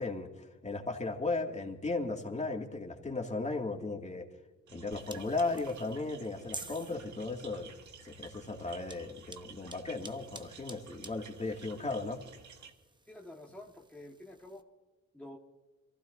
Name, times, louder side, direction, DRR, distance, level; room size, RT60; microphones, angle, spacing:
voice 1, 0.0-4.3 4.7-7.7 8.0-12.2, left 3 dB, 25° left, 2 dB, 2.4 m, -36 dB
sound 1, 4.7-12.7, right 6 dB, 80° right, 1.8 m, -53 dB
sound 2, 4.9-14.6, right 2 dB, 15° right, 1.0 m, -52 dB
voice 2, 13.1-14.6 15.1-15.4, left 1 dB, 5° left, -2 dB, 1.6 m, -49 dB
23.5 x 15.5 x 2.7 m, 1.2 s
cardioid pair, 70°, 29 cm